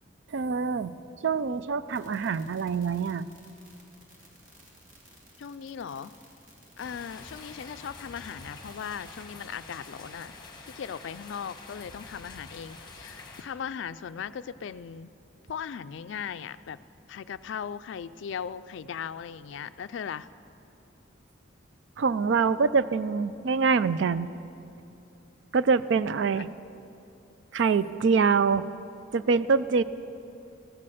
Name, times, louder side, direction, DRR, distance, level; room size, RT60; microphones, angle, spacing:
voice 1, 0.3-0.9 1.2-3.3 22.0-24.3 25.5-26.5 27.5-28.6 29.1-29.8, right 5 dB, 65° right, 15 dB, 0.4 m, -25 dB
sound 1, 1.9-9.2, right 2 dB, 40° right, 2.4 m, -57 dB
voice 2, 5.4-6.1 6.8-15.1 15.5-16.8 17.1-20.3 26.3-26.4, left 7 dB, 70° left, 14 dB, 0.3 m, -38 dB
sound 2, 6.8-13.4, left 3 dB, 20° left, 1.2 m, -47 dB
15.0 x 7.6 x 7.8 m, 2.8 s
head